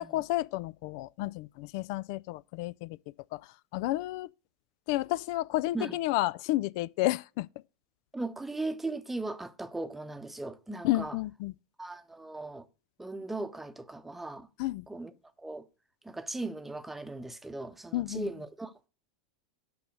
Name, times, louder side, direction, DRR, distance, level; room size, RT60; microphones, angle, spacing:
voice 1, 0.0-3.0 3.3-3.4 3.7-4.3 4.9-7.5 10.8-11.5 14.6-14.9 17.9-18.3, left 17 dB, 60° left, 0.3 m, -31 dB
voice 2, 8.1-11.2 11.8-12.7 13.0-14.5 14.9-15.1 15.4-15.7 16.0-18.9, right 2 dB, 10° right, 0.8 m, -38 dB
6.9 x 5.6 x 6.3 m
hypercardioid pair, 90°, 3 cm